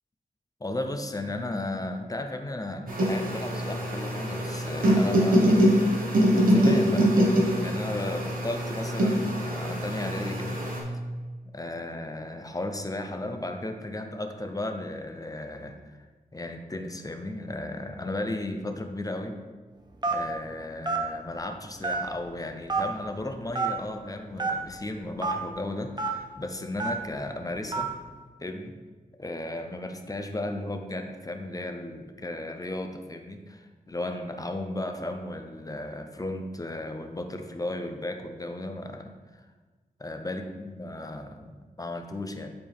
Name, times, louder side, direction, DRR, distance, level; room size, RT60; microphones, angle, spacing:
voice 1, 0.6-5.6 6.5-10.6 11.4-16.0 16.3-19.4 20.1-27.9 28.4-28.8 29.2-39.4 40.0-42.5, left 1 dB, 25° left, 5 dB, 0.7 m, -35 dB
sound 1, 2.9-10.8, equal, 65° right, 1.6 m, -24 dB
Telephone, 20.0-20.3 20.8-21.0 21.8-22.2 22.7-22.8 23.5-23.7 24.4-24.5 25.2-25.3 26.0-26.1 26.8-27.0 27.7-27.9, right 3 dB, 30° right, 1.0 m, -27 dB
10.0 x 4.3 x 3.6 m, 1.3 s
wide cardioid pair, 90°, 15 cm